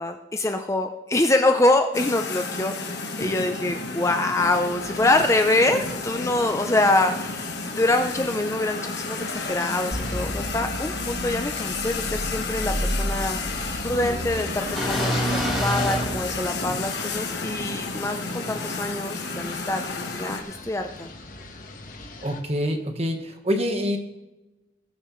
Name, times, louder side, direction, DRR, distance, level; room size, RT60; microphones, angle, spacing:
voice 1, 0.0-13.4 13.8-15.3 15.6-21.1, left 2 dB, 15° left, 6 dB, 0.5 m, -25 dB
sound 1, 1.9-20.4, left 3 dB, 60° left, 1.3 m, -32 dB
sound 2, 4.4-22.4, left 2 dB, 45° left, 1.3 m, -42 dB
sound 3, 9.9-16.8, equal, ahead, 3.5 m, -29 dB
voice 2, 22.2-24.0, equal, 35° right, 5 dB, 1.2 m, -26 dB
20.5 x 7.4 x 3.1 m, 1.0 s
head